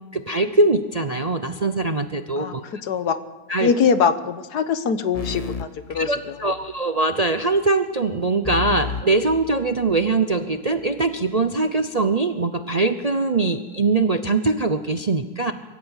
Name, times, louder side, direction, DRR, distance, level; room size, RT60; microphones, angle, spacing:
voice 1, 0.1-2.6 3.5-3.7 5.9-15.5, right 3 dB, 50° right, 9 dB, 0.4 m, -22 dB
voice 2, 2.4-3.2 3.6-6.5, left 6 dB, 65° left, 11 dB, 1.5 m, -23 dB
sound 1, 5.1-6.8 8.4-10.2, left 5 dB, 40° left, 0.5 m, -33 dB
24.0 x 13.5 x 8.1 m, 1.2 s
omnidirectional pair, 1.9 m